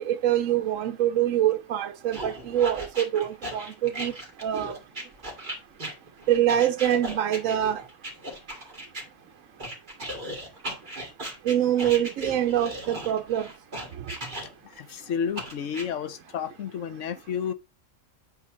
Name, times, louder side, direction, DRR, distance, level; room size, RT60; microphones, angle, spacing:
voice 1, 0.0-4.1 4.4-4.8 6.3-7.8 11.4-13.5, right 11 dB, 85° right, 1.0 m, -25 dB
sound 1, 2.1-9.0 9.6-14.8 15.4-15.9, right 1 dB, 40° right, 2.3 m, -36 dB
voice 2, 14.8-17.5, left 7 dB, 75° left, 1.1 m, -31 dB
8.4 x 3.2 x 6.3 m
omnidirectional pair, 1.3 m